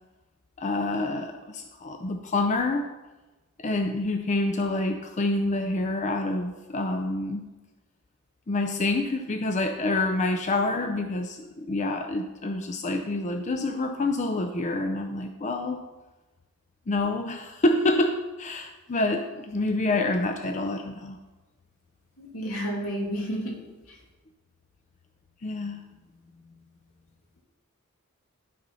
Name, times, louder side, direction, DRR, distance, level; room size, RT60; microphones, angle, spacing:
voice 1, 0.6-2.8 3.6-7.4 8.5-15.8 16.9-21.2 25.4-25.8, left 2 dB, 35° left, 5 dB, 0.5 m, -27 dB
voice 2, 22.2-23.5 23.9-24.0, equal, 80° left, -2 dB, 2.5 m, -31 dB
11.5 x 4.0 x 5.5 m, 1.2 s
head